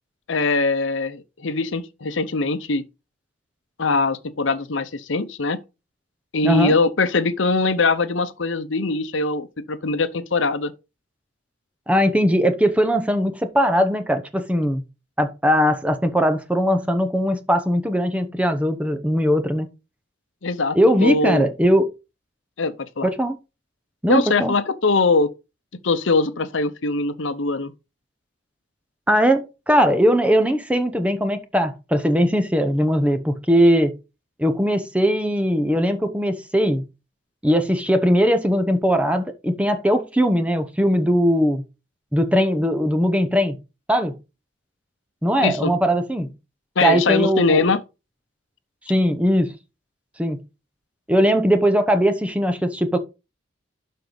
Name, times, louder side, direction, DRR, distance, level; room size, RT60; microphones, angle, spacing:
voice 1, 0.3-2.8 3.8-5.6 6.3-10.7 20.4-21.5 22.6-23.1 24.1-25.3 25.8-27.7 45.4-45.7 46.8-47.8, left 3 dB, 75° left, 0.8 m, -22 dB
voice 2, 6.4-6.7 11.9-14.8 15.2-19.7 20.7-21.9 23.0-23.4 24.0-24.5 29.1-33.9 34.4-36.9 37.4-41.6 42.1-43.6 43.9-44.1 45.2-46.3 46.8-47.7 48.9-49.5 50.2-50.4 51.1-53.0, equal, 5° right, 0.8 m, -20 dB
12.0 x 4.6 x 4.0 m
head